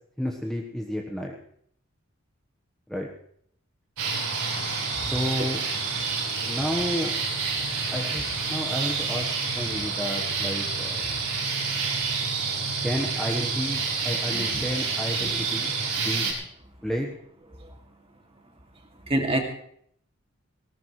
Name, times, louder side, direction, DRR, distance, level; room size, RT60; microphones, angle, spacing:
voice 1, 0.2-1.3 2.9-3.1 5.0-5.6 6.5-7.1 7.9-9.3 9.5-11.0 12.8-15.7 16.0-16.3 16.8-17.2, equal, ahead, -1 dB, 1.2 m, -31 dB
sound 1, 4.0-16.3, right 4 dB, 90° right, 5.4 m, -28 dB
voice 2, 14.1-15.4 16.2-16.3 17.6-17.8 19.0-19.4, right 1 dB, 25° right, 2 dB, 2.4 m, -31 dB
19.5 x 18.5 x 3.2 m, 0.66 s
head